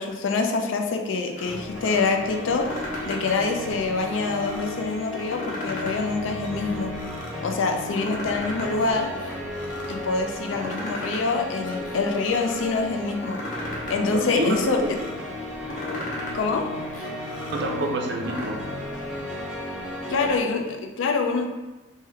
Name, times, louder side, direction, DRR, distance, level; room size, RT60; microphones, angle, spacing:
voice 1, 0.0-6.9 7.4-9.1 9.9-13.4 13.9-14.8 16.3-16.7 20.1-21.5, left 4 dB, 90° left, 4 dB, 0.4 m, -25 dB
sound 1, 1.3-2.0 2.4-3.5 3.8-4.7 5.1-6.1 6.4-7.3 7.7-8.7 9.0-9.9 10.3-11.3 11.6-12.6 13.0-14.0 14.2-15.1 15.5-16.4 16.8-18.4, left 1 dB, 40° left, 0.6 m, -36 dB
sound 2, 1.4-20.4, left 1 dB, 5° right, 0.5 m, -34 dB
voice 2, 14.1-15.1 17.5-18.6, right 2 dB, 60° right, 1 dB, 0.5 m, -28 dB
3.5 x 2.1 x 3.3 m, 1.1 s
head